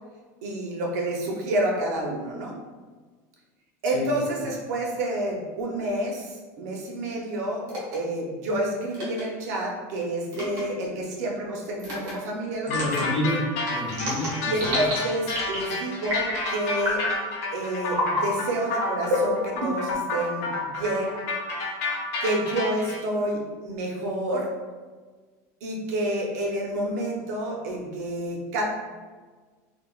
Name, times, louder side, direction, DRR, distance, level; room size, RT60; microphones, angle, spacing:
voice 1, 0.4-2.5 3.8-7.7 7.9-12.8 14.5-17.0 17.5-21.1 22.2-24.5 25.6-28.6, right 1 dB, 75° right, 0 dB, 0.6 m, -29 dB
sound 1, 7.7-8.0 8.9-9.2 10.3-10.6 11.8-12.1 12.7-13.0 13.9-14.9 15.3-15.7 16.0-16.4 16.8-17.2 17.9-18.2 19.0-19.9, left 1 dB, 45° right, 1.2 m, -28 dB
sound 2, 12.7-23.0, left 3 dB, 75° left, 0.6 m, -30 dB
voice 2, 12.7-14.8, left 1 dB, 10° left, -5 dB, 0.5 m, -29 dB
3.3 x 2.1 x 2.3 m, 1.4 s
supercardioid pair, 170°, 9 cm